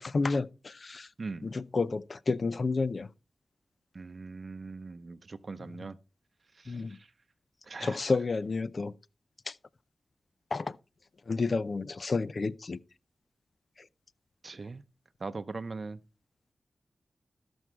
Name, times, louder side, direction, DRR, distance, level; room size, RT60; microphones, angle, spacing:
voice 1, 0.0-1.1 1.4-3.1 5.6-5.9 6.7-7.0 7.8-8.9 9.5-9.6 10.5-10.8 11.3-12.8 13.8-13.9, left 3 dB, 50° left, 0.5 m, -31 dB
voice 2, 3.9-6.0 6.6-7.0 7.7-8.0 14.4-14.8 15.2-16.0, right 3 dB, 50° right, 0.7 m, -40 dB
13.0 x 6.2 x 4.6 m
wide cardioid pair, 95°, 0 cm